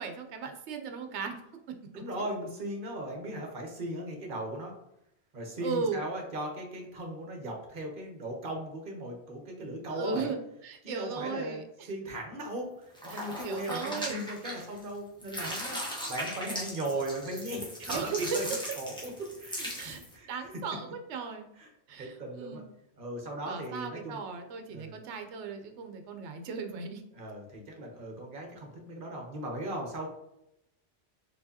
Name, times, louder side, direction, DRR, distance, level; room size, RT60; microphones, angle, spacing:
voice 1, 0.0-1.3 2.2-2.3 5.6-6.0 9.9-11.9 13.1-14.2 17.9-18.2 19.8-20.0 20.3-21.5 21.9-22.7 23.4-27.0, right 5 dB, 85° right, 5 dB, 1.0 m, -37 dB
voice 2, 1.9-4.7 5.3-10.3 10.8-20.3 21.6-21.7 22.0-22.6 23.0-24.2 24.7-25.0 27.1-30.1, right 1 dB, 50° right, 1 dB, 1.2 m, -38 dB
sound 1, 13.0-14.9 15.2-20.1, equal, 5° left, 1.0 m, -38 dB
4.6 x 3.8 x 2.8 m, 0.82 s
omnidirectional pair, 1.2 m